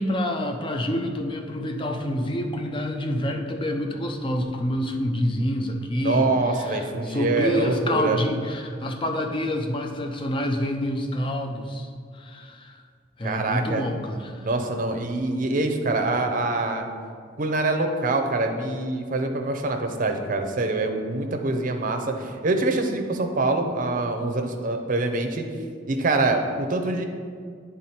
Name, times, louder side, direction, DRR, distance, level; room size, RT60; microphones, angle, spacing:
voice 1, 0.0-6.3 6.6-12.8 13.2-14.5, left 1 dB, 25° left, 3 dB, 0.5 m, -27 dB
voice 2, 6.0-8.2 13.2-13.8 14.4-16.9 17.4-25.4 25.9-27.0, right 2 dB, 45° right, 4 dB, 0.6 m, -25 dB
9.3 x 3.7 x 4.3 m, 2.1 s
head